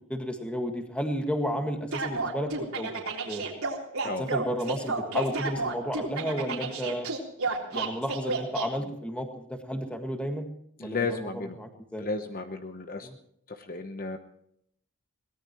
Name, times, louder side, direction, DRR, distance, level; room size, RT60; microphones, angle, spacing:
voice 1, 0.1-2.9 3.3-3.4 4.2-7.1 7.7-10.5 10.8-12.0 13.0-13.2, equal, 5° left, 4 dB, 1.8 m, -32 dB
sound 1, 1.9-8.7, right 3 dB, 80° right, 3.7 m, -31 dB
voice 2, 10.8-11.6 12.0-13.1 13.7-14.2, left 3 dB, 40° left, 7 dB, 0.9 m, -33 dB
22.5 x 18.5 x 3.1 m, 0.70 s
head